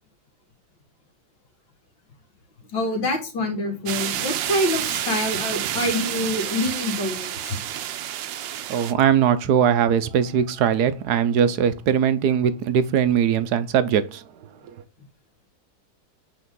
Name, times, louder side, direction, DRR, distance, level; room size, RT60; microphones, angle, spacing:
voice 1, 2.7-7.6, left 1 dB, 75° left, 2.7 m, -26 dB
sound 1, 3.9-8.9, right 11 dB, 80° right, 1.4 m, -29 dB
voice 2, 8.7-14.2, right 8 dB, 65° right, 1.2 m, -20 dB
8.2 x 4.6 x 3.7 m
omnidirectional pair, 2.0 m